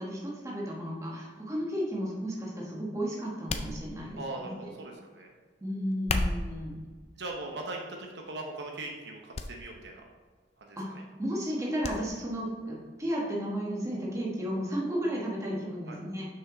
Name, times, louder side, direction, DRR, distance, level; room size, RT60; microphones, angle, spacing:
voice 1, 0.0-4.7 5.6-6.8 10.8-16.3, equal, 15° right, -3 dB, 1.3 m, -33 dB
sound 1, 3.5-4.3 5.9-6.6 7.4-7.8 8.2-8.4 9.3-9.5 9.8-9.9 11.8-12.0 12.4-12.5, left 2 dB, 35° left, 0.4 m, -32 dB
voice 2, 4.1-5.3 7.1-10.0 10.6-11.0 15.9-16.0, right 2 dB, 70° right, 1 dB, 0.9 m, -40 dB
6.2 x 5.8 x 3.9 m, 1.4 s
head